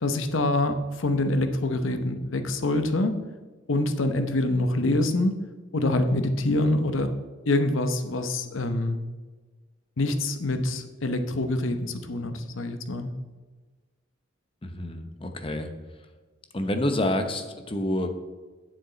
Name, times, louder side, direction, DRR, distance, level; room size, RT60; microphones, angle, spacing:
voice 1, 0.0-3.2 3.7-5.4 5.7-7.2 7.5-9.0 10.0-13.1, left 2 dB, 85° left, 8 dB, 0.9 m, -25 dB
voice 2, 14.6-15.7 16.5-18.1, left 1 dB, 25° left, 7 dB, 0.8 m, -28 dB
9.1 x 7.4 x 4.0 m, 1.3 s
head